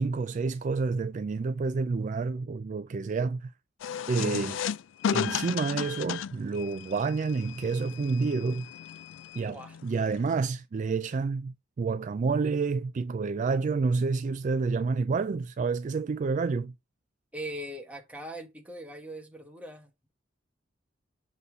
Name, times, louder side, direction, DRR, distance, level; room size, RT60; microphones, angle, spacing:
voice 1, 0.0-3.5 4.1-4.6 5.1-8.7 9.4-16.7, right 4 dB, 40° right, 0.3 m, -29 dB
sound 1, 3.8-10.4, left 8 dB, 70° left, 0.3 m, -34 dB
voice 2, 9.5-9.8 17.3-20.1, right 1 dB, 5° right, 1.5 m, -41 dB
6.9 x 4.1 x 4.6 m
head